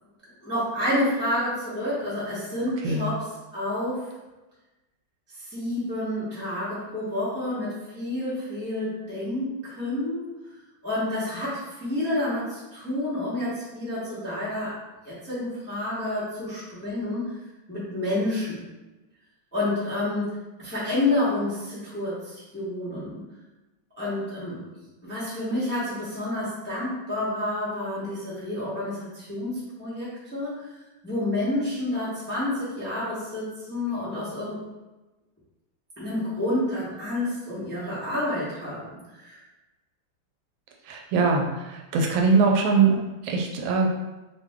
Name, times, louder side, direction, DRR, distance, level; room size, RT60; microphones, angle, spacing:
voice 1, 0.4-3.2 3.5-4.1 5.4-10.3 10.8-14.8 15.0-17.4 17.7-18.6 19.5-23.2 24.0-24.6 25.0-30.7 31.0-34.6 36.0-39.4, left 1 dB, 10° left, -10 dB, 0.6 m, -29 dB
voice 2, 40.9-43.9, right 4 dB, 85° right, 1 dB, 1.4 m, -22 dB
3.3 x 2.2 x 3.5 m, 1.1 s
omnidirectional pair, 2.1 m